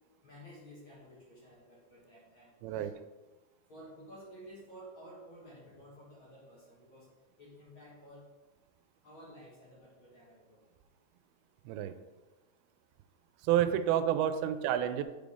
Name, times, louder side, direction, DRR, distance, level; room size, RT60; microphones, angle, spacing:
voice 1, 0.2-2.9 3.7-7.1 7.4-8.3 9.0-10.8, equal, 50° left, -6 dB, 1.5 m, -53 dB
voice 2, 13.4-15.0, right 10 dB, 85° right, 10 dB, 2.4 m, -29 dB
8.8 x 5.1 x 3.6 m, 1.2 s
omnidirectional pair, 4.4 m